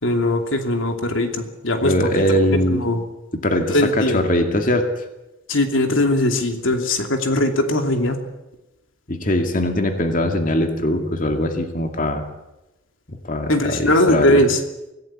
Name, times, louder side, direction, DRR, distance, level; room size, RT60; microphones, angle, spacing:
voice 1, 0.0-3.0 3.7-4.2 5.5-8.2 13.5-14.6, left 1 dB, 80° left, 5 dB, 2.7 m, -20 dB
voice 2, 1.8-2.9 3.3-5.0 9.1-12.3 13.1-14.4, left 1 dB, 40° left, 5 dB, 2.2 m, -21 dB
25.0 x 16.5 x 8.7 m, 0.98 s
head